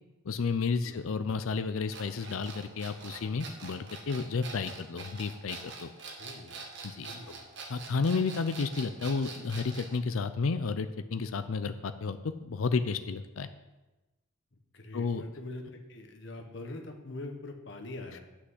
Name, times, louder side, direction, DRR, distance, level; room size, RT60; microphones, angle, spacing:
voice 1, 0.2-5.9 6.8-7.3 7.7-13.5 14.9-15.2, left 4 dB, 85° left, 10 dB, 0.5 m, -32 dB
voice 2, 0.8-1.1 6.2-6.6 6.9-7.4 14.5-18.2, left 2 dB, 60° left, 4 dB, 1.3 m, -43 dB
sound 1, 1.9-9.9, right 4 dB, 55° right, 1.5 m, -44 dB
8.4 x 6.0 x 7.8 m, 1.1 s
head